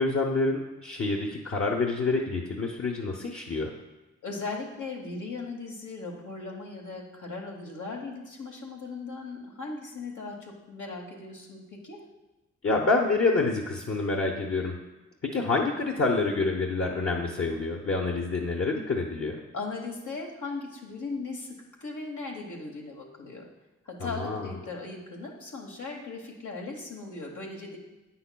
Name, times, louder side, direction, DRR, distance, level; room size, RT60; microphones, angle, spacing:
voice 1, 0.0-3.7 12.6-14.8 15.3-19.4 24.0-24.5, left 3 dB, 45° left, -2 dB, 0.8 m, -27 dB
voice 2, 4.2-12.0 19.5-23.5 23.8-27.8, left 3 dB, 80° left, 0 dB, 1.1 m, -38 dB
8.1 x 5.6 x 2.2 m, 1.1 s
supercardioid pair, 40°, 30 cm